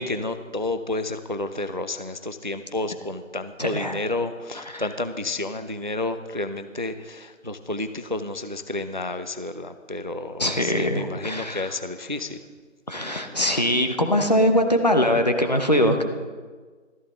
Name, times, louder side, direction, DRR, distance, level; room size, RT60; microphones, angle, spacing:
voice 1, 0.0-12.4, left 2 dB, 40° right, 11 dB, 0.5 m, -30 dB
voice 2, 3.6-4.0 4.6-4.9 10.4-11.7 12.9-16.0, equal, 30° left, 5 dB, 1.0 m, -22 dB
14.5 x 14.0 x 3.8 m, 1.5 s
figure-of-eight pair, 170°, 39 cm